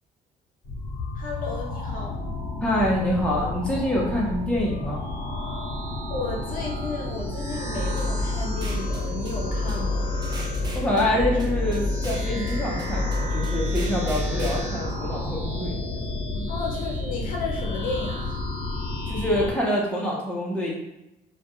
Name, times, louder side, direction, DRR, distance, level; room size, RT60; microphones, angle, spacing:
sound 1, 0.6-19.5, left 2 dB, 30° left, 0.9 m, -31 dB
voice 1, 1.2-2.2 6.1-10.1 16.5-18.4, left 3 dB, 55° left, -1 dB, 0.6 m, -33 dB
voice 2, 2.6-5.1 10.7-15.8 16.3-16.5 19.1-20.7, left 1 dB, 5° left, -4 dB, 0.7 m, -26 dB
sound 2, 7.8-14.6, left 2 dB, 25° right, 0.5 m, -29 dB
2.3 x 2.2 x 2.9 m, 0.91 s
cardioid pair, 110°, 17 cm